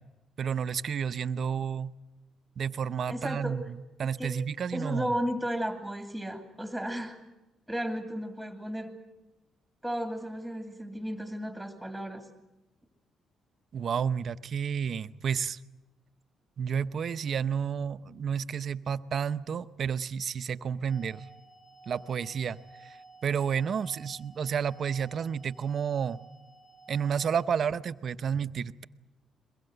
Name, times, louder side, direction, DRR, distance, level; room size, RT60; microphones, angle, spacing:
voice 1, 0.4-1.9 2.6-5.1 13.7-15.6 16.6-21.3 21.9-23.0 23.2-26.2 26.9-28.8, right 7 dB, 55° right, 12 dB, 0.7 m, -31 dB
voice 2, 3.1-3.6 4.2-4.4 4.7-7.2 7.7-8.9 9.8-12.3, equal, ahead, 5 dB, 2.6 m, -34 dB
sound 1, 20.9-27.5, right 3 dB, 55° left, 4.2 m, -53 dB
22.5 x 21.5 x 7.9 m, 1.0 s
cardioid pair, 90°, 0 cm